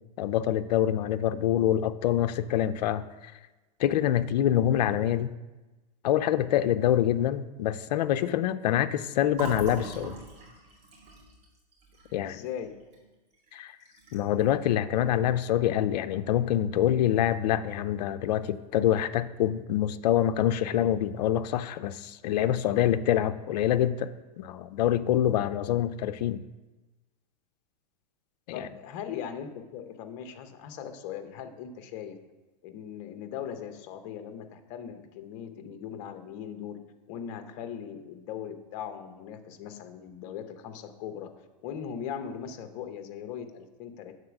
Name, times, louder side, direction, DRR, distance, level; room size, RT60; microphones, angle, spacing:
voice 1, 0.2-3.3 3.8-5.3 6.0-10.2 12.1-12.4 13.5-13.7 14.1-26.4 28.5-28.6, left 11 dB, 75° left, 12 dB, 0.4 m, -26 dB
Fill (with liquid), 9.3-13.0 13.3-13.5 13.8-14.4, right 3 dB, 30° right, 2.2 m, -41 dB
voice 2, 12.2-12.8 28.5-32.2 32.6-36.8 37.1-41.3 41.6-44.2, left 8 dB, 45° left, 8 dB, 0.8 m, -39 dB
6.6 x 4.0 x 5.9 m, 1.1 s
supercardioid pair, 140°, 21 cm